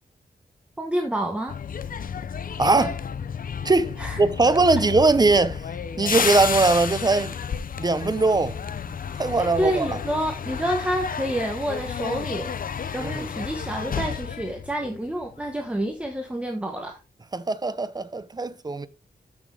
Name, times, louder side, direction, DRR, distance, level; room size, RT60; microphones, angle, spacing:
voice 1, 0.8-1.6 4.0-4.2 9.4-12.5 12.9-17.0, right 1 dB, 5° right, 1.2 m, -28 dB
sound 1, 1.5-15.5 15.8-16.1, left 7 dB, 55° left, 0.7 m, -31 dB
voice 2, 2.6-3.0 3.6-5.6 6.0-7.3 7.8-8.6 9.2-10.0 13.0-13.3 17.3-18.9, right 3 dB, 25° right, 0.7 m, -21 dB
13.5 x 6.3 x 3.4 m
wide cardioid pair, 160°, 17 cm